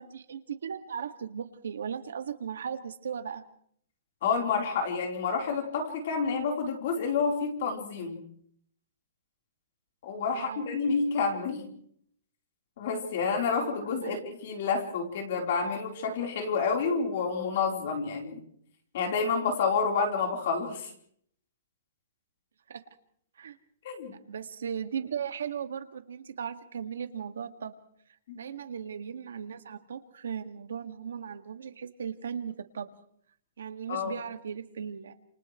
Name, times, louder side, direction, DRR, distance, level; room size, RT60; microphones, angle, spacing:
voice 1, 0.0-3.4 10.3-10.7 14.0-14.2 22.7-22.8 23.4-23.6 24.3-27.7 28.3-32.9 33.6-35.1, right 7 dB, 85° right, 8 dB, 1.9 m, -37 dB
voice 2, 4.2-8.2 10.0-11.7 12.8-18.4 18.9-20.9 23.8-24.1 28.3-28.4 33.9-34.1, left 5 dB, 40° left, 2 dB, 3.8 m, -29 dB
29.5 x 28.0 x 3.2 m, 0.66 s
hypercardioid pair, 180°, 0 cm